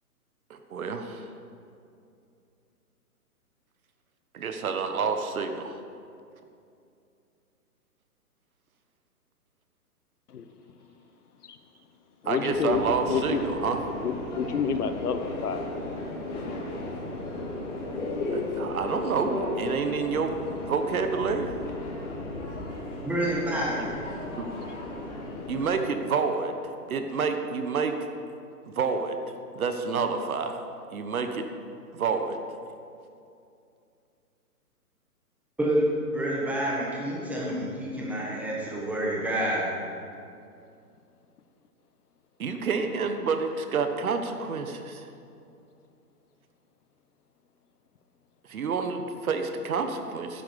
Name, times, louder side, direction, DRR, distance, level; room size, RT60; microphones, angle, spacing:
voice 1, 0.5-1.3 4.3-5.8 12.2-13.8 18.3-20.4 20.7-21.6 24.4-24.5 25.5-26.6 26.9-27.9 28.7-29.2 29.5-30.6 30.9-31.4 31.9-32.4 42.4-45.1 48.5-50.4, right 5 dB, 65° right, 7 dB, 1.3 m, -28 dB
voice 2, 12.2-12.8 13.1-13.4 14.0-15.7 23.8-23.9, left 6 dB, 75° left, 9 dB, 1.1 m, -29 dB
Subway metro underground, 12.5-25.7, left 2 dB, 50° left, 3.0 m, -35 dB
voice 3, 23.0-24.0 35.6-39.7, right 1 dB, 5° right, -5 dB, 1.6 m, -28 dB
10.5 x 8.6 x 6.8 m, 2.5 s
hypercardioid pair, 150°, 46 cm